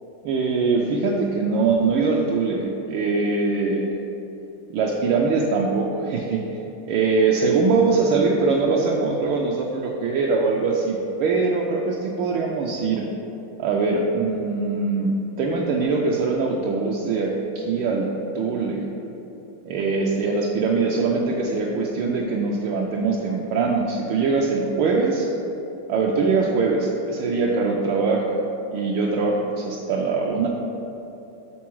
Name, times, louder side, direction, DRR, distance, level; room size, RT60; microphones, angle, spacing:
voice 1, 0.2-3.9 4.7-6.4 6.9-13.1 13.6-18.1 18.3-18.9 19.6-25.3 25.9-28.4 28.7-30.5, right 4 dB, 75° right, -2 dB, 1.3 m, -22 dB
7.2 x 3.8 x 4.5 m, 2.9 s
omnidirectional pair, 2.4 m